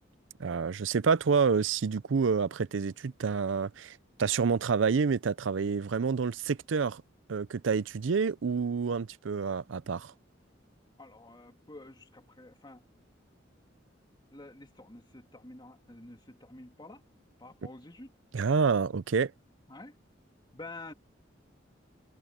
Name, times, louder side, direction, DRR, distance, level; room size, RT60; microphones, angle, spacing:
voice 1, 0.4-7.0 7.3-10.1 18.3-19.3, right 5 dB, 80° right, 0.5 m, -28 dB
voice 2, 11.0-12.8 14.3-17.0 17.4-18.1 19.7-20.0 20.5-20.9, left 2 dB, 25° left, 2.6 m, -48 dB
head